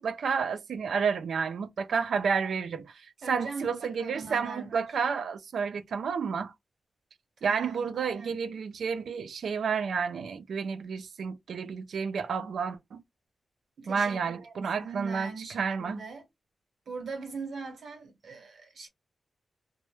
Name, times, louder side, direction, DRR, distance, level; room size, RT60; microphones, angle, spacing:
voice 1, 0.0-6.5 7.4-13.0 13.9-16.0, right 6 dB, 85° right, 0.3 m, -31 dB
voice 2, 3.2-4.8 7.4-8.3 13.8-16.2 16.9-18.9, right 4 dB, 70° right, 0.9 m, -41 dB
2.1 x 2.0 x 3.0 m
wide cardioid pair, 155°, 0 cm